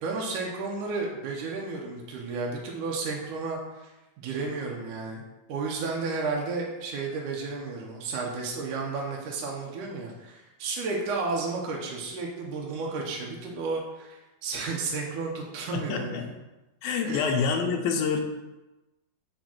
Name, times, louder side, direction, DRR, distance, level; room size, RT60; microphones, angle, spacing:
voice 1, 0.0-5.2 5.5-16.3 17.0-17.2, right 3 dB, 70° right, -2 dB, 2.2 m, -32 dB
voice 2, 15.7-16.3 16.8-18.2, left 5 dB, 80° left, 3 dB, 2.4 m, -27 dB
5.8 x 5.0 x 5.9 m, 1.0 s
omnidirectional pair, 4.4 m